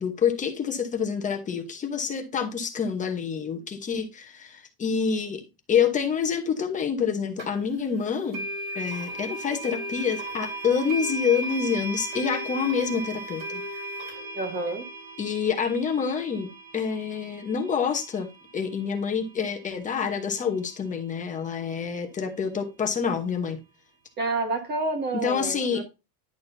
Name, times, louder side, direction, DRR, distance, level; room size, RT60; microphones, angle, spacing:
voice 1, 0.0-5.4 5.7-8.4 8.7-13.6 15.2-18.3 18.5-23.6 25.1-25.8, left 6 dB, 15° left, 1.0 m, -27 dB
sound 1, 7.4-7.5 8.3-19.3, right 1 dB, 65° right, 4.5 m, -36 dB
voice 2, 14.3-14.8 24.2-25.8, right 2 dB, 20° right, 1.4 m, -29 dB
10.5 x 6.3 x 2.7 m
cardioid pair, 170°, 47 cm